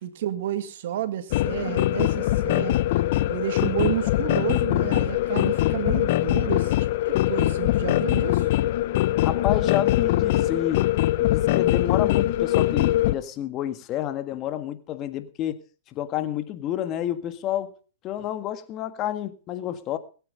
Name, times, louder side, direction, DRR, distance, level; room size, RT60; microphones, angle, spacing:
voice 1, 0.0-2.8 3.3-6.7 7.1-8.5, right 11 dB, 60° right, 2.0 m, -30 dB
sound 1, 1.3-13.1, left 14 dB, 55° left, 0.8 m, -22 dB
voice 2, 9.2-10.8 11.2-15.6 15.9-17.8 18.0-20.0, left 12 dB, 35° left, 1.7 m, -29 dB
21.0 x 9.1 x 5.6 m
hypercardioid pair, 120°, 0 cm